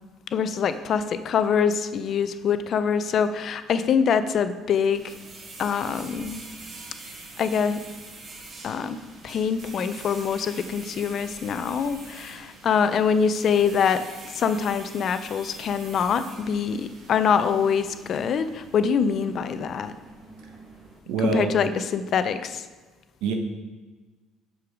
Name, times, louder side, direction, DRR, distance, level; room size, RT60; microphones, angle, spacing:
voice 1, 0.3-5.1 5.6-6.5 7.4-7.8 8.6-9.0 9.2-14.0 14.4-19.9 21.3-22.6, left 6 dB, 35° left, 11 dB, 0.4 m, -24 dB
sound 1, 4.9-21.0, right 3 dB, 30° right, 1.0 m, -44 dB
voice 2, 21.1-21.5 23.2-23.3, right 5 dB, 80° right, 5 dB, 1.0 m, -25 dB
6.4 x 5.8 x 4.9 m, 1.3 s
cardioid pair, 175°, 0 cm